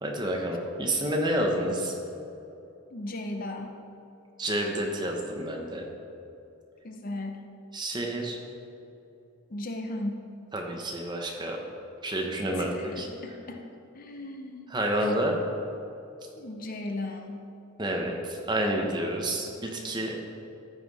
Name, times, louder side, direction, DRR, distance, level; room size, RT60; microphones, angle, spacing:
voice 1, 0.0-1.9 4.4-5.9 7.7-8.4 10.5-11.6 12.0-13.1 14.7-15.4 17.8-20.2, right 1 dB, 20° right, 1 dB, 1.0 m, -29 dB
voice 2, 2.9-3.7 6.8-7.5 9.5-10.2 12.5-13.7 13.9-14.8 16.4-17.5, left 1 dB, 40° left, 4 dB, 0.6 m, -36 dB
14.0 x 5.8 x 4.2 m, 2.8 s
head